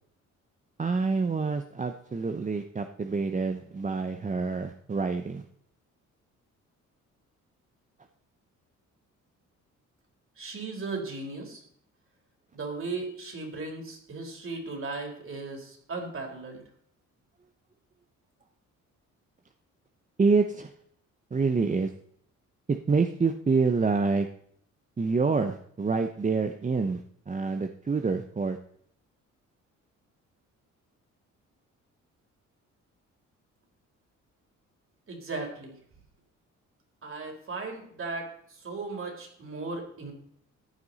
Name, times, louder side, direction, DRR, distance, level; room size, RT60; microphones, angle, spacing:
voice 1, 0.8-5.4 20.2-20.7 21.3-21.9 22.7-24.3 25.0-28.6, right 4 dB, 25° right, 7 dB, 0.9 m, -27 dB
voice 2, 10.4-11.6 12.5-16.6 35.1-35.8 37.0-38.3 38.6-40.1, right 3 dB, 45° right, 2 dB, 4.2 m, -36 dB
14.5 x 9.5 x 4.1 m, 0.66 s
cardioid pair, 90°, 30 cm